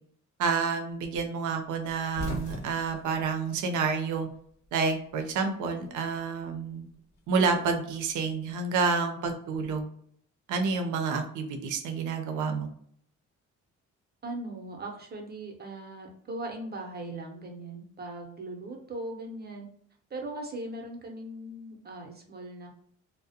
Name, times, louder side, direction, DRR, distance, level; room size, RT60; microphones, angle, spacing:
voice 1, 0.4-4.3 4.7-6.9 7.3-9.8 10.5-12.7, right 5 dB, 80° right, 5 dB, 0.6 m, -29 dB
sound 1, 1.8-4.4 4.7-5.7 6.9-8.4, left 2 dB, 65° left, 0.8 m, -41 dB
voice 2, 14.2-19.7 20.1-22.7, right 2 dB, 35° right, 2 dB, 0.7 m, -39 dB
2.3 x 2.1 x 2.7 m, 0.63 s
cardioid pair, 90°, 30 cm